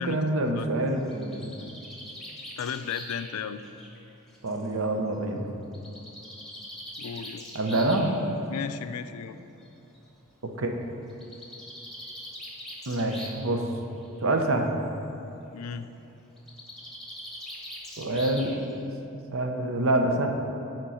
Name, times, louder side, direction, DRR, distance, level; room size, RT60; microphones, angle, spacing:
voice 1, 0.0-1.5 4.4-5.5 7.5-8.2 10.6-10.7 12.9-13.6 14.2-14.7 18.0-18.6 19.3-20.3, right 2 dB, 65° right, 3 dB, 0.8 m, -26 dB
Bird, 0.9-4.7 5.7-8.1 9.2-9.3 9.6-9.7 9.9-10.0 11.1-13.5 13.8-14.3 16.4-18.8, left 1 dB, ahead, 1.1 m, -42 dB
voice 2, 2.6-3.6 7.0-7.5 8.5-9.4 15.5-15.9, left 7 dB, 80° left, 11 dB, 0.4 m, -34 dB
8.9 x 4.5 x 5.6 m, 2.8 s
head